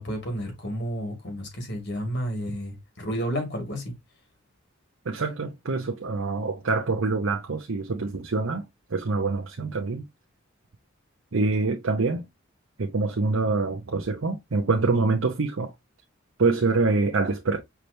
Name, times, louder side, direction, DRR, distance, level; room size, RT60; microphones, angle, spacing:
voice 1, 0.0-3.9, equal, 60° left, 2.1 m, -31 dB
voice 2, 5.0-10.0 11.3-12.2 12.8-15.7 16.4-17.6, right 3 dB, 80° right, 0.7 m, -25 dB
5.8 x 3.3 x 2.7 m
head